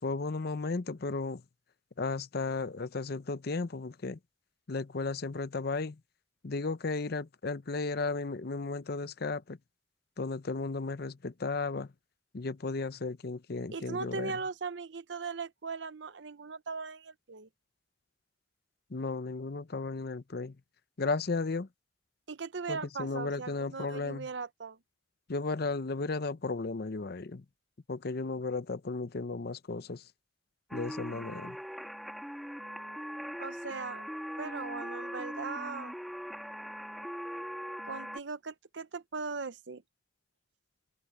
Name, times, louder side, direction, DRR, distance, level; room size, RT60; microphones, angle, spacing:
voice 1, 0.0-1.4 2.0-4.2 4.7-6.0 6.4-9.6 10.2-11.9 12.3-14.3 18.9-20.5 21.0-21.7 22.7-24.3 25.3-27.4 27.9-30.0 30.7-31.6, left 3 dB, 55° left, 0.7 m, -34 dB
voice 2, 13.7-17.5 22.3-24.8 33.4-34.0 34.4-36.0 37.8-39.8, right 4 dB, 70° right, 0.8 m, -39 dB
sound 1, 30.7-38.2, equal, ahead, 1.9 m, -40 dB
head